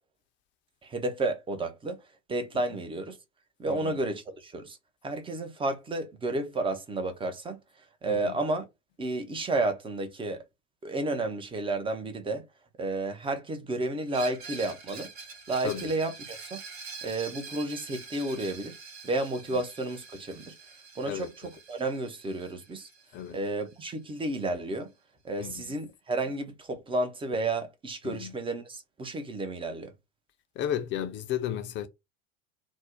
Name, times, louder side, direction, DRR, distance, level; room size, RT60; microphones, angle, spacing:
voice 1, 0.8-2.0 2.3-3.2 3.6-4.8 5.0-7.6 8.0-8.6 9.0-10.4 10.8-12.5 12.8-15.1 15.5-16.6 17.0-18.8 19.0-20.6 21.0-22.9 23.3-24.9 25.2-29.9, right 2 dB, 15° right, 0.6 m, -31 dB
voice 2, 3.7-4.0 8.1-8.4 15.6-15.9 19.5-19.6 21.0-21.3 23.1-23.4 25.4-25.8 28.0-28.4 30.6-31.9, left 10 dB, 30° left, 0.5 m, -34 dB
Screech, 14.1-23.7, right 4 dB, 60° right, 1.1 m, -45 dB
2.6 x 2.0 x 3.5 m
figure-of-eight pair, 80°, 36 cm